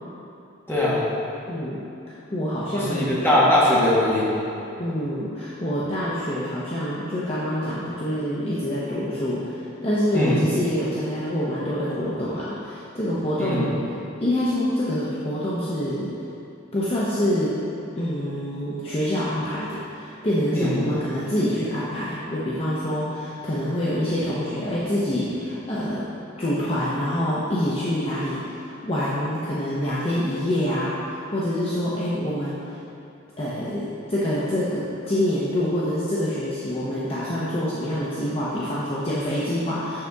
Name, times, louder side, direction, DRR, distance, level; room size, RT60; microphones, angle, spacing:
voice 1, 0.7-1.0 2.7-4.3 10.1-10.4 13.4-13.6 20.5-20.9, left 1 dB, 10° left, -8 dB, 1.5 m, -21 dB
voice 2, 2.3-3.1 4.8-13.8 14.2-16.1 16.7-17.5 18.0-26.0 26.4-32.6 33.4-40.0, equal, 30° left, -8 dB, 0.8 m, -26 dB
6.7 x 6.5 x 3.5 m, 2.7 s
head